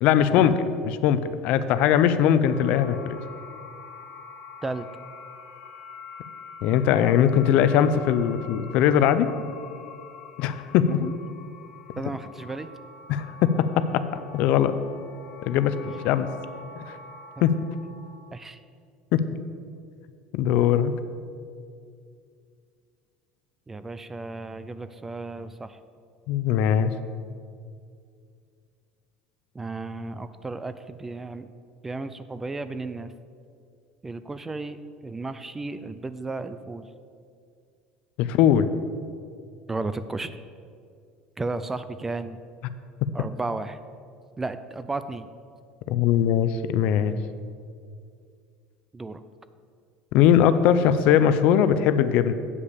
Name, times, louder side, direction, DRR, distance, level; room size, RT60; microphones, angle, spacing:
voice 1, 0.0-3.2 6.6-9.3 10.4-11.1 13.1-14.0 14.3-14.7 15.4-15.8 16.0-16.3 17.4-17.6 19.1-19.2 20.3-20.9 26.3-26.9 38.2-38.7 45.9-47.2 50.1-52.3, left 9 dB, 60° left, 12 dB, 0.5 m, -20 dB
sound 1, 2.4-18.3, left 5 dB, 85° left, 1.5 m, -45 dB
voice 2, 11.9-12.7 18.3-18.6 23.7-25.8 29.5-31.5 31.8-33.1 34.0-34.8 35.0-36.9 39.7-40.4 41.4-42.4 43.1-43.8 44.4-45.3 48.9-49.2, right 3 dB, 15° right, 12 dB, 0.3 m, -33 dB
8.3 x 5.0 x 7.1 m, 2.3 s
cardioid pair, 135°, 2 cm